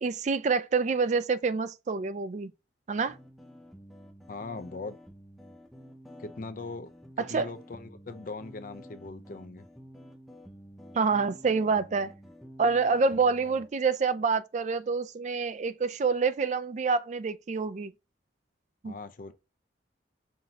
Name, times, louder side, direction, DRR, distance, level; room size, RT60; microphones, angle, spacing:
voice 1, 0.0-2.5 2.9-3.2 7.2-7.5 10.9-12.1 12.6-17.9 18.8-18.9, right 4 dB, 40° right, 0.3 m, -27 dB
sound 1, 3.1-13.7, equal, ahead, 0.6 m, -50 dB
voice 2, 4.3-5.0 6.2-9.7 18.8-19.3, left 3 dB, 45° left, 0.5 m, -40 dB
5.7 x 2.7 x 2.8 m
head